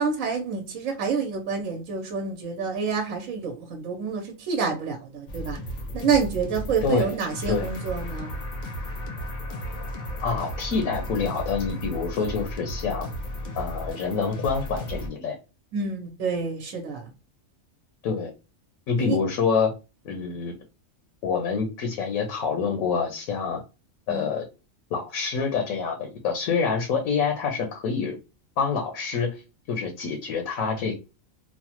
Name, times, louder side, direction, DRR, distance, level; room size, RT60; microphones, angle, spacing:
voice 1, 0.0-5.6 5.9-8.3 15.7-17.1 19.0-19.2 20.1-20.3 24.1-24.3, right 5 dB, 75° right, 1.1 m, -28 dB
sound 1, 5.3-15.1, equal, 45° left, 0.6 m, -34 dB
voice 2, 6.8-7.2 7.5-7.7 10.2-13.1 13.6-15.4 18.0-18.3 18.9-19.7 20.0-20.5 21.2-23.6 24.1-24.5 24.9-28.2 28.6-29.4 29.7-30.9, left 5 dB, 85° left, 1.1 m, -26 dB
3.2 x 2.1 x 2.8 m
omnidirectional pair, 1.4 m